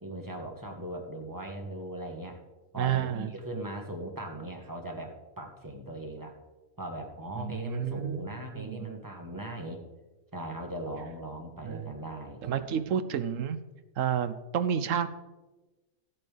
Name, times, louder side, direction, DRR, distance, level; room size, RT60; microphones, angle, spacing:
voice 1, 0.0-2.4 2.7-6.3 6.8-9.8 10.3-12.7, right 1 dB, 15° right, 1 dB, 1.3 m, -39 dB
voice 2, 2.8-3.3 7.4-8.3 8.5-8.9 11.6-11.8 12.4-13.6 14.0-15.1, right 9 dB, 75° right, 12 dB, 0.9 m, -30 dB
15.5 x 8.6 x 3.3 m, 1.1 s
omnidirectional pair, 1.4 m